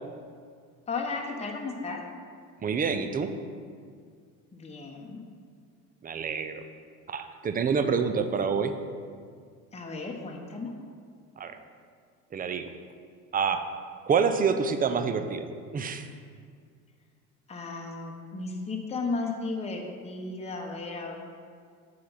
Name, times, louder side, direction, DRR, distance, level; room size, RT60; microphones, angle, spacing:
voice 1, 0.9-2.0 4.5-5.2 9.7-10.7 17.5-21.1, left 3 dB, 15° left, 1 dB, 0.9 m, -34 dB
voice 2, 2.6-3.3 6.0-6.6 7.1-8.8 11.4-11.6 12.3-12.7 13.3-13.6 14.1-16.1, right 6 dB, 20° right, 9 dB, 0.4 m, -27 dB
7.5 x 3.4 x 5.6 m, 2.1 s
hypercardioid pair, 65°, 45 cm